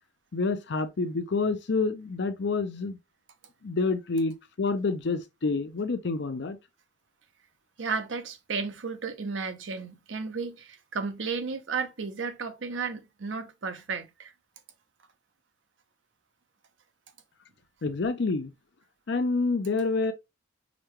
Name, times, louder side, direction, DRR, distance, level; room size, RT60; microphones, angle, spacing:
voice 1, 0.3-3.0 3.6-6.6 17.8-18.5 19.1-20.1, left 3 dB, 60° left, 0.5 m, -28 dB
voice 2, 7.8-14.3, right 5 dB, 70° right, 0.6 m, -33 dB
5.0 x 2.2 x 2.9 m
head